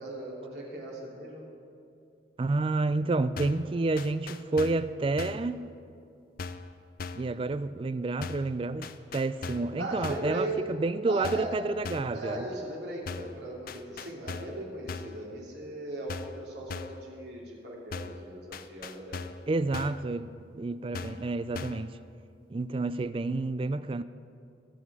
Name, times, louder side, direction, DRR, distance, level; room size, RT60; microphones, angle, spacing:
voice 1, 0.0-1.5 9.8-10.6 11.0-11.5 12.1-19.2 20.6-20.8, right 1 dB, 70° right, 2.9 m, -38 dB
voice 2, 2.4-5.6 7.1-12.5 19.5-20.3 20.5-21.9 22.5-24.0, right 3 dB, 30° right, 0.3 m, -29 dB
sound 1, 3.4-3.7 4.0-4.9 5.2-5.5 6.4-6.7 7.0-7.3 8.2-8.5 8.8-9.7 10.0-10.3 11.2-11.6 11.8-12.2 13.1-13.4 13.7-14.6 14.9-15.2 16.1-16.4 16.7-17.0 17.9-18.2 18.5-19.4 19.7-20.1 20.9-21.3 21.5-21.9, left 4 dB, 55° left, 0.5 m, -39 dB
21.5 x 7.5 x 4.8 m
head